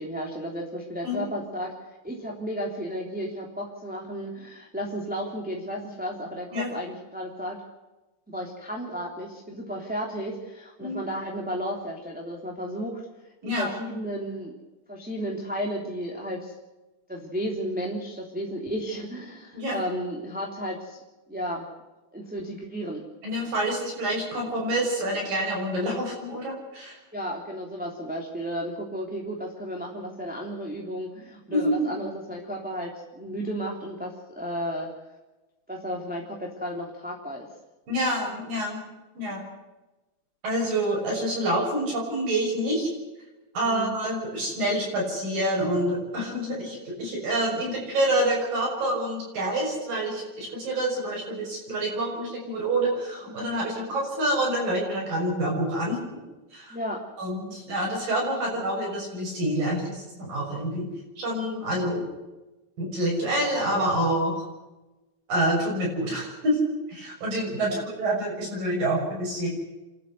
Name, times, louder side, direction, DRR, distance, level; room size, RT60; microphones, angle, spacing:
voice 1, 0.0-1.7 2.0-7.6 8.3-13.0 13.4-14.5 14.9-16.5 17.1-21.0 21.3-21.7 22.1-23.0 27.1-34.9 35.7-37.5 43.6-43.9 53.3-53.5 56.7-57.0 67.6-67.9, equal, 5° right, -2 dB, 2.5 m, -33 dB
voice 2, 13.4-13.7 19.5-19.8 23.2-27.0 31.5-31.9 37.9-38.8 39.2-39.4 40.4-42.9 43.5-56.0 56.5-56.8 57.2-60.9 61.2-62.0 62.8-64.4 65.3-69.5, right 1 dB, 60° right, -2 dB, 7.8 m, -27 dB
29.5 x 12.0 x 8.0 m, 1.1 s
omnidirectional pair, 4.4 m